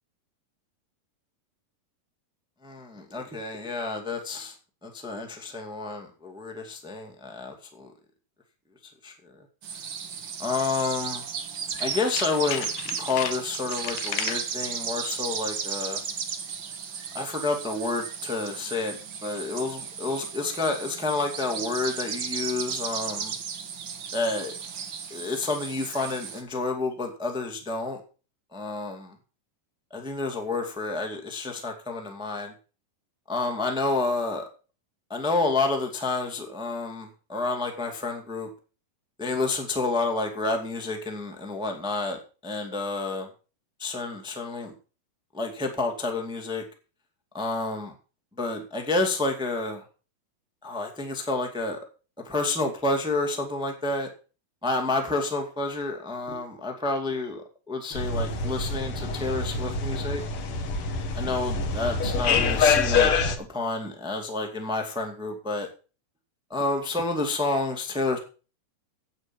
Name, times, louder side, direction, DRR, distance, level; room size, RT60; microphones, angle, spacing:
voice 1, 2.6-4.5 4.8-7.9 9.0-9.1 10.4-11.2 11.8-16.0 17.1-23.3 24.1-24.5 25.1-28.0 28.5-29.1 29.9-32.5 33.3-34.4 35.1-38.5 39.2-43.3 43.8-44.7 45.3-46.6 47.3-47.9 48.4-49.8 50.6-51.8 52.2-54.1 54.6-60.2 61.1-65.7 66.5-68.2, left 3 dB, ahead, 4 dB, 1.1 m, -29 dB
sound 1, 9.6-26.4, right 7 dB, 70° right, 1.1 m, -35 dB
Tools, 11.7-14.5 15.0-15.3 15.6-15.7, left 12 dB, 85° left, 1.6 m, -35 dB
sound 2, 57.9-63.4, left 5 dB, 55° left, 1.6 m, -25 dB
9.7 x 8.6 x 5.9 m, 0.35 s
omnidirectional pair, 4.1 m